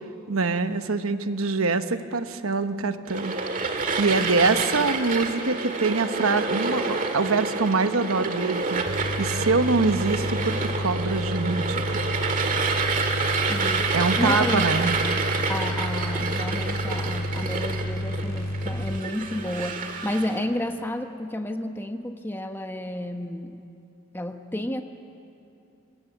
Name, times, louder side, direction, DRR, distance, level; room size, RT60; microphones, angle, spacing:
voice 1, 0.3-3.3 4.0-12.0 13.9-15.0, right 3 dB, 80° right, 9 dB, 1.1 m, -24 dB
sound 1, 3.1-20.4, right 4 dB, 40° right, 1.8 m, -28 dB
sound 2, 8.9-19.0, left 1 dB, 65° left, 2.4 m, -31 dB
voice 2, 13.5-14.9 15.5-23.6 24.1-24.8, left 1 dB, 10° left, 6 dB, 1.0 m, -31 dB
27.0 x 20.0 x 8.3 m, 2.7 s
head